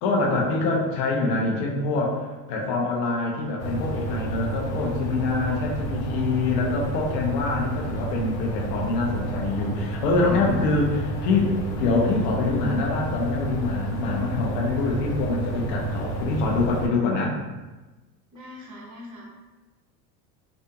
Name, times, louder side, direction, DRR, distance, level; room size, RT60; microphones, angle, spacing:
voice 1, 0.0-17.4, left 3 dB, 70° left, -2 dB, 1.0 m, -25 dB
sound 1, 3.6-16.9, right 2 dB, 30° left, 0.6 m, -30 dB
voice 2, 18.3-19.3, left 1 dB, 35° right, -2 dB, 1.1 m, -42 dB
3.8 x 2.6 x 2.3 m, 1.2 s
hypercardioid pair, 80°, 49 cm